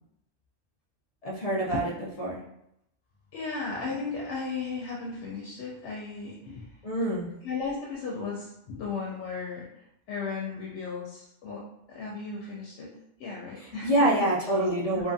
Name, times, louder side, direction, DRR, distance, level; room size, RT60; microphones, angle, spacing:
voice 1, 1.2-1.9 2.2-2.4 6.8-7.3 13.6-15.1, right 1 dB, 50° left, -3 dB, 0.4 m, -26 dB
voice 2, 3.3-6.7 7.4-9.7 10.1-11.6 11.9-14.3 14.9-15.0, left 4 dB, 80° left, -3 dB, 0.9 m, -35 dB
2.7 x 2.4 x 2.5 m, 0.80 s
omnidirectional pair, 1.2 m